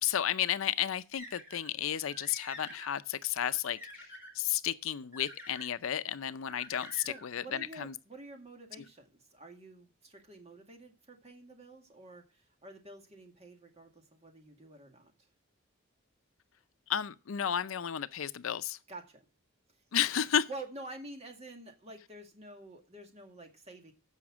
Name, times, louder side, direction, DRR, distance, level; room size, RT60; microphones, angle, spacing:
voice 1, 0.0-3.8 4.3-7.9 16.9-18.8 19.9-20.5, left 10 dB, 75° left, 0.5 m, -32 dB
sound 1, 1.1-1.7 2.1-3.0 3.5-4.3 5.1-5.7 6.5-7.3, left 1 dB, 10° right, 4.8 m, -48 dB
voice 2, 7.0-15.1 18.9-19.2 20.5-23.9, right 2 dB, 30° right, 2.0 m, -48 dB
15.0 x 5.8 x 6.1 m
head